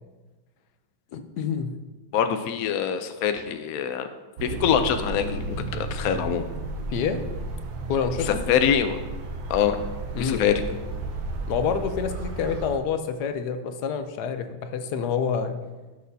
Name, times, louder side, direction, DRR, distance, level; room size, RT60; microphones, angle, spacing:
voice 1, 1.1-1.7 6.9-7.2 7.9-8.4 10.1-10.4 11.5-15.6, left 6 dB, 65° left, 8 dB, 1.1 m, -27 dB
voice 2, 2.1-4.1 4.4-6.5 8.2-9.0 9.5-9.8 10.2-10.6, left 8 dB, 85° left, 8 dB, 0.7 m, -24 dB
sound 1, 4.4-12.8, right 2 dB, 70° right, 1.5 m, -33 dB
14.5 x 6.3 x 2.7 m, 1.2 s
omnidirectional pair, 2.2 m